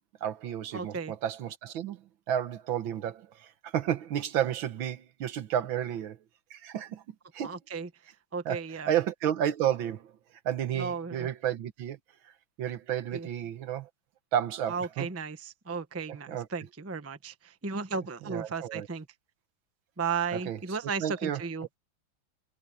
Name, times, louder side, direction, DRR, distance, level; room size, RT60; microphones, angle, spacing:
voice 1, 0.2-6.2 6.5-7.0 7.3-7.5 8.5-8.6 8.9-10.1 10.5-12.0 12.6-13.9 14.3-15.1 16.1-16.5 18.3-18.9 20.3-20.6 21.0-21.4, right 10 dB, 75° right, 1.8 m, -31 dB
voice 2, 0.7-1.1 7.4-7.9 8.3-8.9 10.7-11.3 13.1-13.3 14.7-19.1 20.0-21.7, right 5 dB, 15° right, 0.6 m, -35 dB
omnidirectional pair, 2.2 m